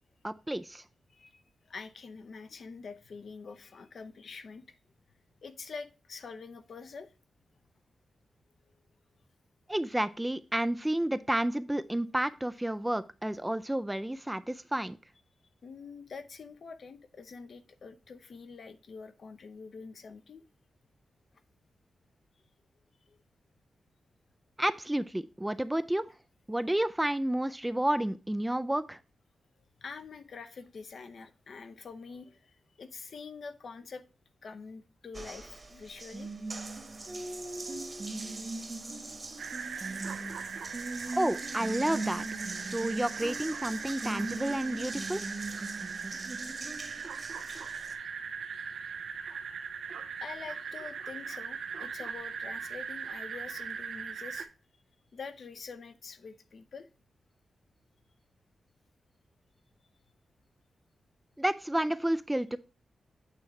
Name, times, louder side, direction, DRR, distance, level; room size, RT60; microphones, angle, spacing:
voice 1, 0.2-0.8 9.7-15.0 24.6-26.1 26.5-29.0 41.1-42.2 42.6-45.2 61.4-62.6, right 1 dB, 10° right, 0.3 m, -30 dB
voice 2, 1.1-4.6 5.4-7.1 15.6-20.4 23.1-23.2 29.8-34.0 34.4-36.3 46.6-46.8 47.5-47.9 50.2-54.5 55.1-56.9, left 5 dB, 60° left, 0.6 m, -46 dB
Water tap faucet, 35.1-47.9, right 2 dB, 30° right, 1.1 m, -40 dB
sound 1, 39.4-54.4, right 6 dB, 85° right, 0.6 m, -40 dB
8.5 x 3.1 x 4.6 m
wide cardioid pair, 100°, 0 cm